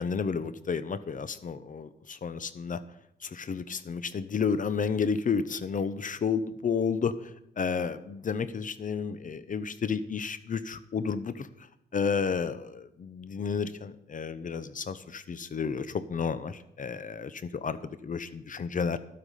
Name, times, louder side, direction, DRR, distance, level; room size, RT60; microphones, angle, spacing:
voice 1, 0.0-2.8 3.2-7.1 7.6-11.5 11.9-19.0, left 6 dB, 45° left, 14 dB, 0.7 m, -31 dB
12.0 x 8.2 x 5.5 m, 0.78 s
cardioid pair, 95°, 19 cm